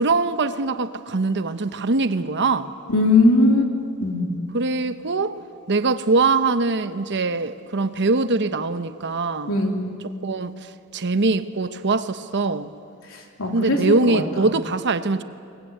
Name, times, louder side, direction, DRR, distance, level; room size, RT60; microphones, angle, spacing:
voice 1, 0.0-2.7 4.5-5.4 5.7-9.5 10.2-12.7 13.5-15.2, right 3 dB, 55° right, 0.9 m, -22 dB
voice 2, 2.9-3.7 4.0-4.2 9.5-9.9 13.4-14.2, left 2 dB, 65° left, 3.1 m, -19 dB
22.5 x 21.0 x 9.3 m
head